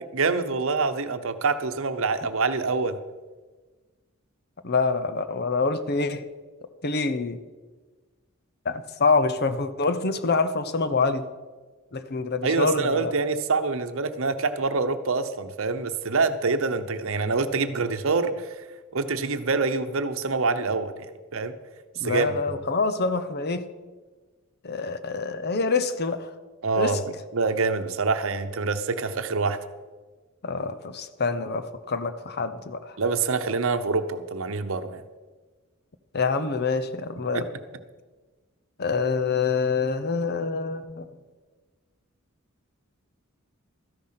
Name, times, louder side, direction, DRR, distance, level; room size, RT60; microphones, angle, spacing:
voice 1, 0.1-3.0 12.4-18.6 18.9-21.5 22.0-22.4 26.6-27.0 27.3-29.6 33.0-35.0 37.3-37.4, right 4 dB, 70° right, 10 dB, 0.9 m, -26 dB
voice 2, 4.6-6.2 6.8-7.4 8.6-11.3 11.9-13.1 22.0-23.6 24.6-26.3 26.8-27.0 30.4-33.0 36.1-37.5 38.8-41.1, left 4 dB, 50° left, 11 dB, 0.9 m, -26 dB
13.5 x 10.5 x 5.7 m, 1.3 s
head